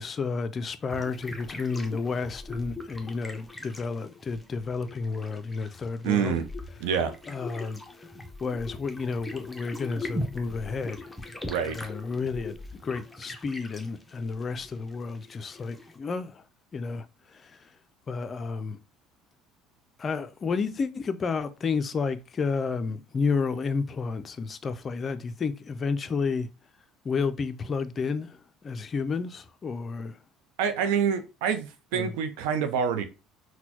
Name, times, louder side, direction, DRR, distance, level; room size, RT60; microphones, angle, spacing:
voice 1, 0.0-6.4 7.3-7.8 8.4-11.1 11.6-16.4 16.7-17.1 17.3-17.6 18.1-18.8 20.0-26.5 27.0-30.2 31.9-32.2, left 4 dB, 35° left, 0.4 m, -31 dB
sound 1, 0.9-16.0, left 1 dB, 10° left, 0.7 m, -41 dB
voice 2, 6.0-6.5 6.8-7.1 11.5-11.8 30.6-31.7 31.9-33.0, right 7 dB, 85° right, 0.5 m, -26 dB
4.2 x 2.2 x 2.9 m
supercardioid pair, 85°, 0 cm